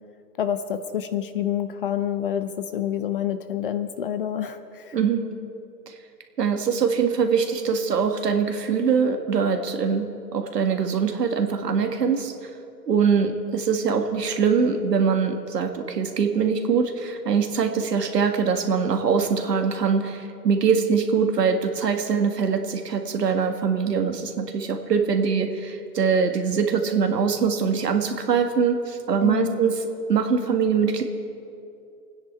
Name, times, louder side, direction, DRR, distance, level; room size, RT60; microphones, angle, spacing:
voice 1, 0.4-5.0 29.2-29.6, left 9 dB, 35° left, 11 dB, 0.5 m, -27 dB
voice 2, 4.9-5.2 6.4-12.3 12.9-29.7 30.1-31.0, right 6 dB, 70° right, 5 dB, 1.8 m, -23 dB
26.0 x 9.7 x 4.6 m, 2.6 s
figure-of-eight pair, 120°, 49 cm